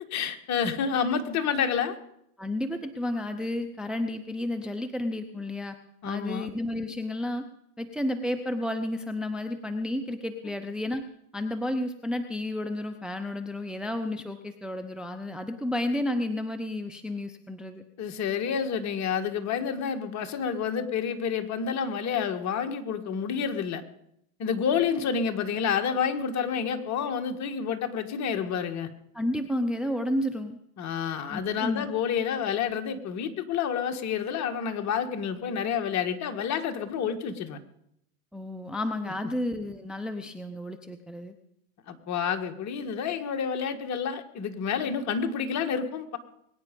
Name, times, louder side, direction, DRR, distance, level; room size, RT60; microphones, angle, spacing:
voice 1, 0.1-2.0 6.0-6.5 18.0-23.8 24.4-28.9 30.8-37.6 41.9-46.2, left 7 dB, 40° left, 6 dB, 1.7 m, -29 dB
voice 2, 2.4-5.8 6.0-7.4 7.8-11.0 11.3-17.8 29.1-30.6 31.3-31.9 38.3-41.3, left 1 dB, ahead, 7 dB, 0.7 m, -31 dB
22.0 x 9.6 x 5.3 m, 0.77 s
hypercardioid pair, 110°, 44 cm